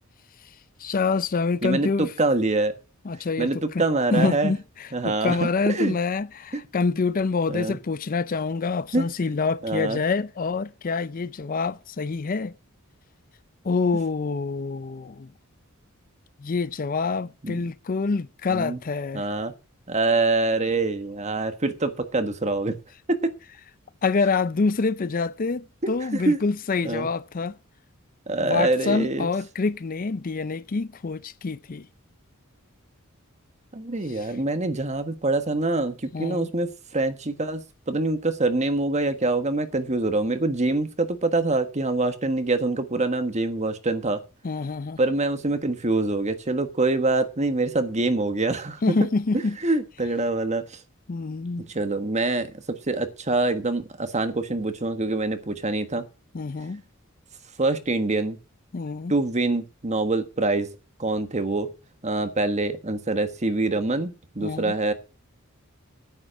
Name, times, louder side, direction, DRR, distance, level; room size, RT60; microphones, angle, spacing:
voice 1, 0.8-2.1 3.0-3.8 4.1-12.5 13.6-15.3 16.4-19.2 24.0-27.6 28.4-31.9 34.1-34.3 36.1-36.5 44.4-45.0 48.8-49.6 51.1-51.7 56.3-56.8 58.7-59.1 64.4-64.7, left 4 dB, 40° left, 0.5 m, -26 dB
voice 2, 1.6-2.7 3.4-4.5 4.9-5.9 7.5-7.8 8.9-9.0 9.6-10.0 17.4-17.6 18.5-18.8 19.1-19.5 19.9-22.7 23.1-23.3 25.8-26.4 26.8-27.1 28.3-29.3 33.7-44.2 45.0-48.8 49.6-50.8 51.7-56.0 57.6-58.4 59.1-60.7 61.0-61.7 62.0-64.9, right 2 dB, 30° right, 1.4 m, -25 dB
9.6 x 9.5 x 6.3 m
head